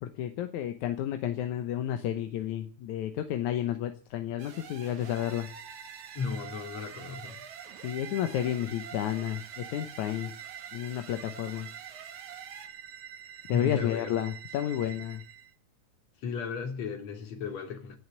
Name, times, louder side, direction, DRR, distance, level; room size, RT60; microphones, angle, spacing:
voice 1, 0.0-5.5 7.8-10.3 10.7-11.7 13.5-15.2, left 11 dB, 85° left, 2.4 m, -31 dB
sound 1, 4.4-12.7, right 7 dB, 75° right, 3.2 m, -48 dB
sound 2, 5.0-15.5, right 9 dB, 60° right, 1.9 m, -47 dB
voice 2, 6.1-7.4 13.5-14.1 16.2-18.0, left 6 dB, 65° left, 3.9 m, -35 dB
17.5 x 6.6 x 9.5 m
omnidirectional pair, 3.4 m